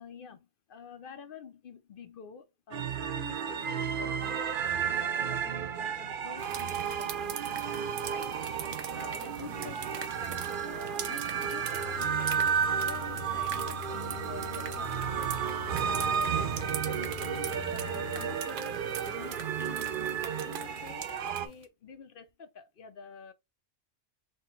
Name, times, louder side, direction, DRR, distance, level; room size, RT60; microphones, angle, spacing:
voice 1, 0.0-8.4 8.9-23.3, left 6 dB, 55° left, 0.7 m, -48 dB
sound 1, 2.7-21.5, right 7 dB, 55° right, 0.6 m, -32 dB
sound 2, 6.4-21.6, right 9 dB, 75° right, 1.0 m, -43 dB
sound 3, 11.7-18.4, left 17 dB, 75° left, 1.0 m, -44 dB
4.4 x 2.1 x 4.3 m
omnidirectional pair, 1.3 m